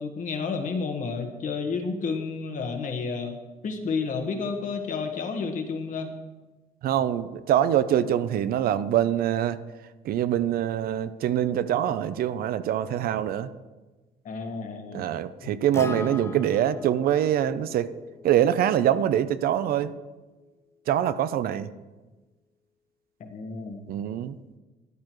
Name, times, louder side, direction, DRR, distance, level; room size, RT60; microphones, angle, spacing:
voice 1, 0.0-3.4 3.6-6.1 14.2-15.1 15.4-15.5 23.2-23.8, left 4 dB, 50° left, 4 dB, 1.5 m, -31 dB
voice 2, 6.8-9.6 10.0-13.5 14.9-17.9 18.2-19.9 20.9-21.7 23.9-24.4, right 10 dB, 65° right, 14 dB, 0.5 m, -24 dB
Acoustic guitar, 15.7-20.0, left 3 dB, 15° left, 0.4 m, -41 dB
13.0 x 9.7 x 3.1 m, 1.2 s
cardioid pair, 110°, 17 cm